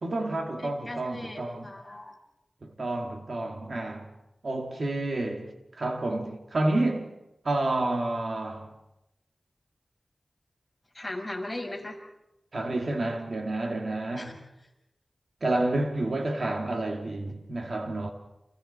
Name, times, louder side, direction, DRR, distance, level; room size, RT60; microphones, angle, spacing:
voice 1, 0.0-1.7 2.6-4.1 4.4-7.1 7.4-8.7 12.5-14.4 15.4-18.1, right 2 dB, 65° right, 2.4 m, -29 dB
voice 2, 0.6-2.1 10.9-12.0 14.2-14.3, left 1 dB, 15° left, 6.0 m, -38 dB
30.0 x 28.5 x 4.4 m
wide cardioid pair, 85°, 0 cm